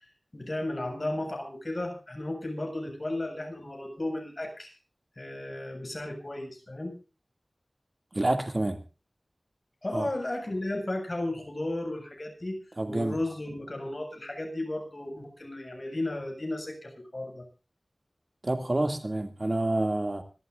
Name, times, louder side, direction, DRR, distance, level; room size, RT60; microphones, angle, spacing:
voice 1, 0.3-4.7 5.2-7.0 9.8-12.6 12.9-17.4, left 1 dB, 45° left, 7.1 m, -34 dB
voice 2, 8.1-8.8 9.9-10.1 12.8-13.2 18.4-20.2, right 1 dB, 45° right, 2.6 m, -28 dB
26.0 x 12.5 x 2.6 m
wide cardioid pair, 50°, 0 cm